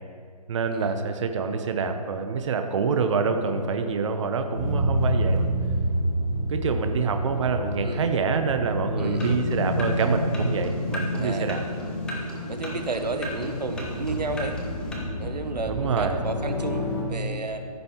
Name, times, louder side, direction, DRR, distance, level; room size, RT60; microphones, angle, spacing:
voice 1, 0.5-5.5 6.5-11.6 15.7-16.2, right 5 dB, 50° right, 7 dB, 0.7 m, -26 dB
sound 1, 4.5-17.0, equal, 40° left, 1.9 m, -28 dB
voice 2, 9.0-9.4 11.2-11.5 12.5-14.6 15.2-17.6, right 3 dB, 90° right, 7 dB, 0.8 m, -32 dB
sound 2, 9.1-14.9, equal, 5° left, 0.5 m, -39 dB
14.0 x 5.4 x 2.9 m, 2.1 s
figure-of-eight pair, 145°, 21 cm